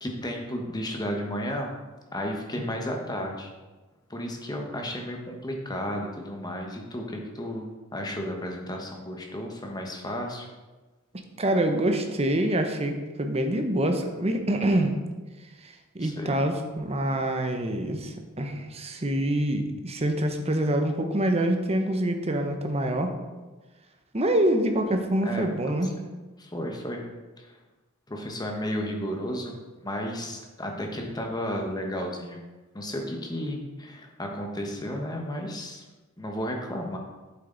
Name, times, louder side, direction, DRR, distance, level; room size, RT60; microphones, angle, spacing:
voice 1, 0.0-1.7 2.1-3.5 4.1-10.5 16.0-16.4 25.2-25.5 25.8-25.9 26.4-27.1 28.1-29.5 29.8-32.4 32.7-35.8 36.2-37.0, equal, 20° left, 1 dB, 1.2 m, -33 dB
voice 2, 11.4-14.9 15.9-23.1 24.1-25.9, right 1 dB, 30° right, 5 dB, 0.9 m, -26 dB
8.4 x 7.4 x 4.0 m, 1.2 s
head